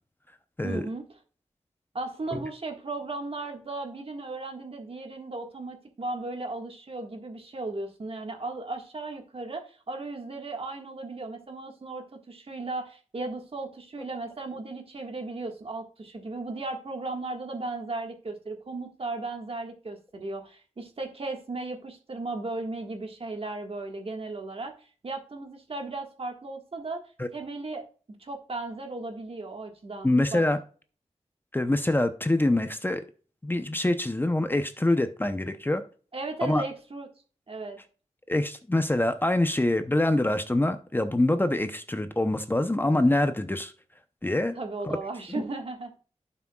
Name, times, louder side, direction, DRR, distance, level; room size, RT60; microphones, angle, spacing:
voice 1, 0.6-1.0 1.9-27.0 27.3-27.8 28.2-30.4 36.1-37.1 37.5-37.8 44.6-46.0, right 3 dB, 50° right, 1.7 m, -36 dB
voice 2, 30.0-30.6 31.5-33.0 33.4-35.8 36.4-36.6 38.3-43.7 44.2-44.6 44.8-45.0 45.4-45.5, left 1 dB, 15° left, 0.7 m, -25 dB
11.0 x 6.0 x 2.4 m
wide cardioid pair, 80°, 12 cm